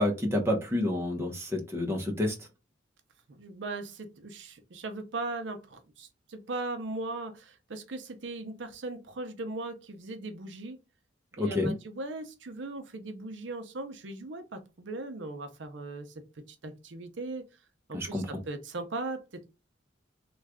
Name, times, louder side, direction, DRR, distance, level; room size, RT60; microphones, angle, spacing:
voice 1, 0.0-2.4 11.4-11.7 17.9-18.3, left 1 dB, 15° right, 1 dB, 0.8 m, -29 dB
voice 2, 3.3-10.8 11.4-16.2 16.5-17.5 17.9-19.5, right 2 dB, 70° right, 7 dB, 0.6 m, -38 dB
3.2 x 2.4 x 3.5 m, 0.26 s
head